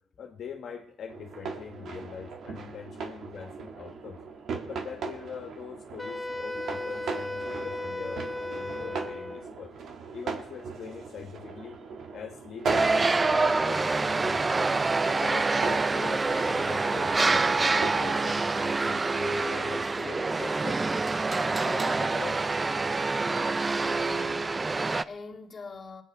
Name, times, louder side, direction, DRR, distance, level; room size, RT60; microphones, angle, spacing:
voice 1, 0.2-4.2 4.7-9.7 10.1-11.8 12.1-17.4 17.8-20.9 21.6-22.4, left 7 dB, 65° left, 1.3 m, -42 dB
sound 1, 1.1-18.3, right 5 dB, 65° right, 1.7 m, -39 dB
Wind instrument woodwind instrument, 6.0-9.4, left 2 dB, 5° left, 1.2 m, -35 dB
sound 2, 12.7-25.0, right 3 dB, 25° right, 0.4 m, -26 dB
voice 2, 24.0-26.0, left 3 dB, 35° left, 2.2 m, -44 dB
21.0 x 9.2 x 4.6 m
cardioid pair, 90°, 0 cm